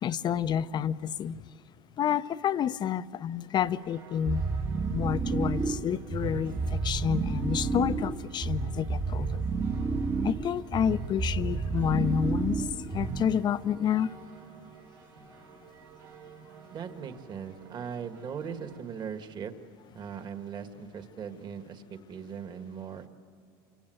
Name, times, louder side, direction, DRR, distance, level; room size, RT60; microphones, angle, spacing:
voice 1, 0.0-1.4 2.0-4.4 4.9-9.5 10.2-12.7 12.9-14.1, left 9 dB, 35° left, 14 dB, 0.7 m, -29 dB
sound 1, 3.6-18.8, right 8 dB, 85° right, 3.5 m, -52 dB
sound 2, 4.3-13.5, right 4 dB, 20° right, 1.1 m, -31 dB
voice 2, 16.7-19.5 19.9-23.1, right 7 dB, 40° right, 8 dB, 1.8 m, -39 dB
28.5 x 25.5 x 7.9 m, 2.4 s
supercardioid pair, 110°, 12 cm